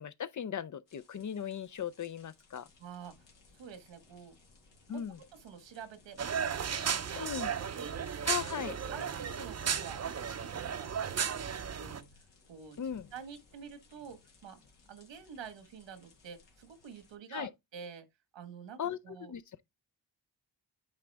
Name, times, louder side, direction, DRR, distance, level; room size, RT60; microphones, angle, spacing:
voice 1, 0.0-2.7 4.9-5.2 7.2-7.5 8.3-8.8 12.8-13.1 17.3-17.5 18.8-19.4, left 8 dB, 45° left, 0.5 m, -37 dB
sound 1, 0.9-17.2, left 4 dB, 80° left, 2.1 m, -63 dB
voice 2, 2.8-3.2 3.5-4.4 4.9-5.0 5.3-7.9 8.5-8.6 8.9-12.8 13.1-14.6 14.9-18.0 18.3-19.3, right 7 dB, 90° right, 1.4 m, -48 dB
sound 2, 6.2-12.0, right 7 dB, 35° right, 0.6 m, -35 dB
9.6 x 4.0 x 3.4 m
cardioid pair, 90°, 43 cm